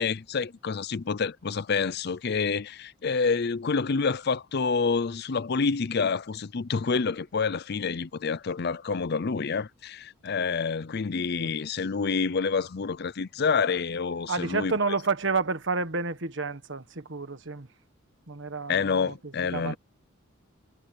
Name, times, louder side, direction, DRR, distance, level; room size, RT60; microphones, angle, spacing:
voice 1, 0.0-14.7 18.7-19.8, left 5 dB, 50° left, 0.5 m, -28 dB
voice 2, 14.3-17.7 18.3-19.8, right 4 dB, 60° right, 1.6 m, -30 dB
head